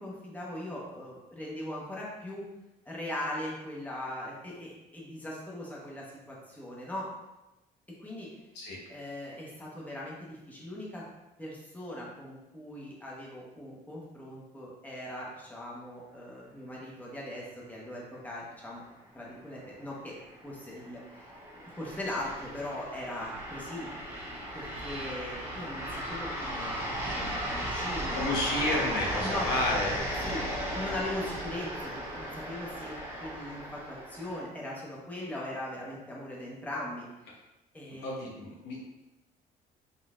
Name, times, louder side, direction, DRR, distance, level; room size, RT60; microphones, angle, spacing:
voice 1, 0.0-2.4 2.8-7.1 8.0-8.3 8.9-11.1 11.4-18.8 19.1-20.1 20.4-23.9 24.5-28.3 29.2-29.9 30.2-30.5 30.7-32.9 33.2-37.4 37.7-38.2, left 1 dB, 10° left, -5 dB, 1.1 m, -40 dB
sound 1, 19.6-34.4, equal, 15° right, 1.2 m, -36 dB
voice 2, 28.1-29.9 38.0-38.8, left 1 dB, 80° left, -2 dB, 1.0 m, -31 dB
4.0 x 3.9 x 2.5 m, 0.99 s
cardioid pair, 110°, 17 cm